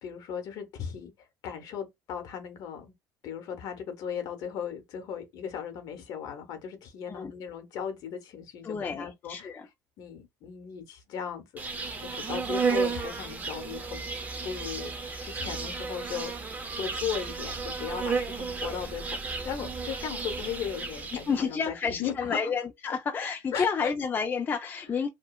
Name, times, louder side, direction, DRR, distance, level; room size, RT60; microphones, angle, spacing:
voice 1, 0.0-1.1 1.4-2.9 3.2-9.5 10.0-11.4 12.0-14.1 14.4-16.3 16.8-22.4 23.5-23.9, left 8 dB, 65° left, 0.9 m, -37 dB
voice 2, 8.6-9.7 21.3-25.1, left 5 dB, 25° left, 0.4 m, -30 dB
Insect, 11.6-21.4, right 4 dB, 25° right, 0.6 m, -33 dB
2.8 x 2.2 x 2.2 m
cardioid pair, 115°, 7 cm